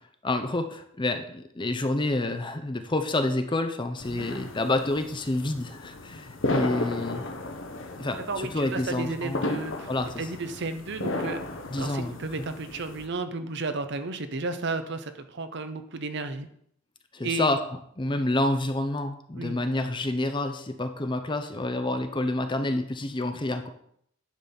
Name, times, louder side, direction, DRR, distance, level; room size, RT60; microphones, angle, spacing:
voice 1, 0.2-7.3 8.0-9.6 9.9-10.3 11.7-12.5 17.1-17.6 18.0-23.7, left 2 dB, 20° left, 7 dB, 0.7 m, -28 dB
sound 1, 4.0-13.1, left 2 dB, 65° left, 1.2 m, -34 dB
voice 2, 8.3-9.9 10.2-11.4 11.7-16.5 17.2-17.5 19.4-19.6, right 3 dB, 55° right, 9 dB, 0.8 m, -33 dB
10.5 x 4.1 x 7.0 m, 0.69 s
head